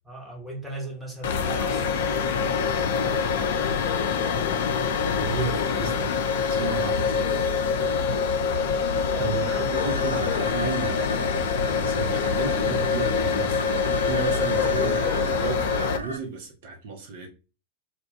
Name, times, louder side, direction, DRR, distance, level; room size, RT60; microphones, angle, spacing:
voice 1, 0.0-2.6 2.9-3.7 4.1-4.6 8.0-8.2 9.1-9.6, right 1 dB, ahead, 1.0 m, -39 dB
sound 1, 1.2-16.0, left 6 dB, 55° left, 0.4 m, -25 dB
sound 2, 3.6-5.7 7.0-8.1 9.2-10.5 11.9-13.0 13.5-15.3, left 7 dB, 40° left, 0.9 m, -35 dB
voice 2, 5.1-7.3 9.2-11.3 11.8-17.3, right 4 dB, 55° right, 0.7 m, -33 dB
sound 3, 9.7-16.2, right 1 dB, 90° right, 0.3 m, -35 dB
2.2 x 2.2 x 3.7 m
figure-of-eight pair, 90°, 0 cm